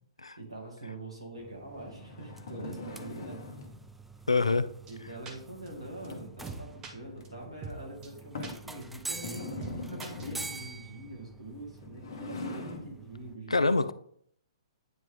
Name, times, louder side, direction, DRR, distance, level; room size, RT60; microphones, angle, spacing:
voice 1, 0.4-3.4 4.9-13.9, right 2 dB, 90° right, 2.2 m, -44 dB
sound 1, 1.4-13.4, right 3 dB, 5° right, 0.4 m, -47 dB
sound 2, 1.7-3.8 5.6-6.5 7.1-7.2 7.7-7.8 8.3-8.7 9.1-10.6 11.7-12.9, left 2 dB, 55° left, 1.1 m, -42 dB
voice 2, 4.3-4.7 13.5-13.9, left 3 dB, 80° left, 0.4 m, -25 dB
sound 3, 4.9-5.0 5.3-5.4 5.7-5.8 6.0-6.1 6.4-6.9 7.2-7.3 7.6-7.8 8.0-8.1 8.4-8.5 8.8-8.9 9.2-9.3 9.6-9.7 10.0-10.6, right 4 dB, 20° right, 1.0 m, -42 dB
9.2 x 3.1 x 3.7 m
figure-of-eight pair, 120°, 3 cm